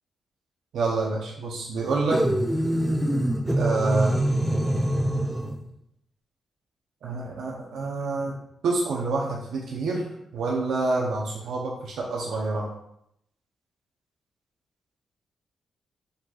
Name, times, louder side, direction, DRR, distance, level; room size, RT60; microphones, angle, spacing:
voice 1, 0.7-2.2 3.6-4.2 7.0-8.3 8.6-12.7, right 3 dB, 85° right, -2 dB, 0.7 m, -27 dB
sound 1, 2.1-5.6, right 1 dB, 5° right, 0.4 m, -24 dB
5.1 x 3.9 x 2.4 m, 0.77 s
wide cardioid pair, 135°, 0 cm